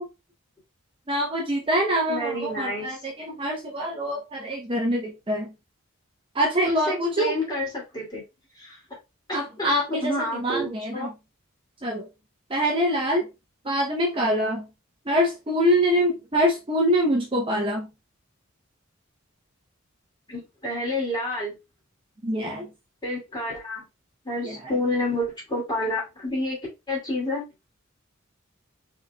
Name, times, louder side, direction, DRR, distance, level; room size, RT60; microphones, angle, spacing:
voice 1, 1.1-5.5 6.3-7.4 9.3-11.1 11.8-12.1 12.5-13.3 13.6-14.7 15.1-17.9 22.2-22.7 24.4-24.6, equal, 25° right, 0.7 m, -25 dB
voice 2, 2.1-2.9 6.6-8.2 8.6-8.8 9.3-11.1 20.3-21.6 23.0-23.8 24.2-26.6 26.9-27.4, left 1 dB, 20° left, 2.6 m, -29 dB
5.1 x 3.9 x 2.2 m
head